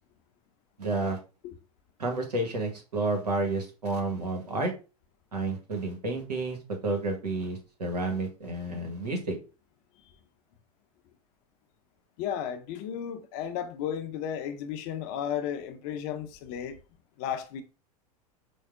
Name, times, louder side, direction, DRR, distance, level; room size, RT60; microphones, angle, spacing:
voice 1, 0.8-1.2 2.0-4.7 5.3-6.6 6.8-9.4, right 2 dB, 85° right, 1.0 m, -30 dB
voice 2, 12.2-16.8 17.2-17.6, left 9 dB, 50° left, 0.5 m, -34 dB
4.4 x 2.0 x 2.3 m
hypercardioid pair, 90°, 20 cm